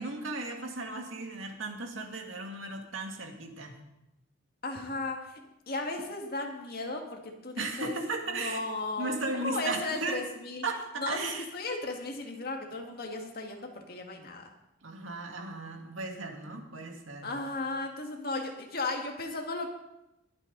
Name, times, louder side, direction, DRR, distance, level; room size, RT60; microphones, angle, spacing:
voice 1, 0.0-3.7 7.6-8.6 9.0-10.2 10.6-11.4 14.8-17.3, right 3 dB, 85° right, 3 dB, 2.1 m, -36 dB
voice 2, 4.6-5.4 5.7-8.0 8.3-10.6 11.0-14.5 17.2-19.7, left 2 dB, 50° left, 2 dB, 2.0 m, -35 dB
21.0 x 8.9 x 4.0 m, 0.89 s
head